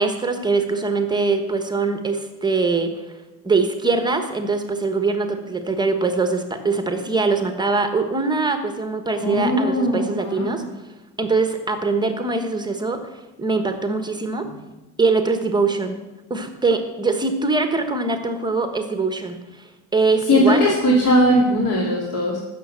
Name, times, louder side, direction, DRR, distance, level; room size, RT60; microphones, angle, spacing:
voice 1, 0.0-2.9 3.4-10.6 11.2-13.0 13.4-14.5 15.0-16.0 16.3-20.6, right 3 dB, 10° right, 7 dB, 1.2 m, -22 dB
voice 2, 9.2-10.6 20.3-22.4, equal, 45° left, -2 dB, 2.6 m, -19 dB
15.0 x 6.7 x 7.3 m, 1.1 s
cardioid pair, 135°, 35 cm